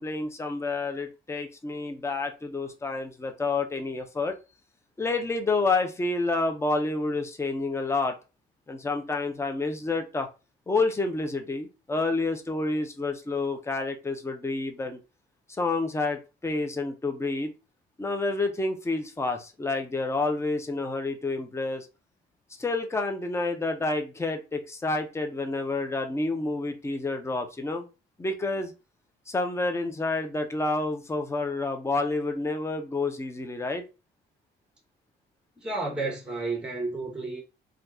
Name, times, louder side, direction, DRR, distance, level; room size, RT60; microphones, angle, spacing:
voice 1, 0.0-4.4 5.0-8.1 8.7-10.3 10.7-15.0 15.6-17.5 18.0-21.9 22.6-27.9 28.2-28.7 29.3-33.8, left 3 dB, 15° left, 0.6 m, -29 dB
voice 2, 35.6-37.4, right 3 dB, 5° right, 1.0 m, -31 dB
2.7 x 2.4 x 3.5 m
cardioid pair, 90°, 20 cm